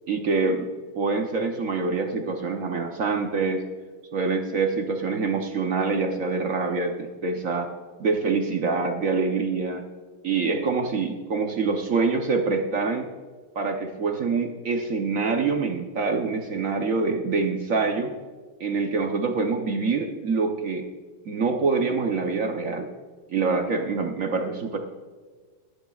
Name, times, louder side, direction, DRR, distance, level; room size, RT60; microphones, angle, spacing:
voice 1, 0.1-3.6 4.1-7.7 8.0-9.8 10.2-13.1 13.5-18.1 18.6-20.8 21.2-22.9 23.3-24.8, right 4 dB, 55° right, 4 dB, 0.9 m, -25 dB
21.5 x 11.0 x 2.3 m, 1.4 s
omnidirectional pair, 2.2 m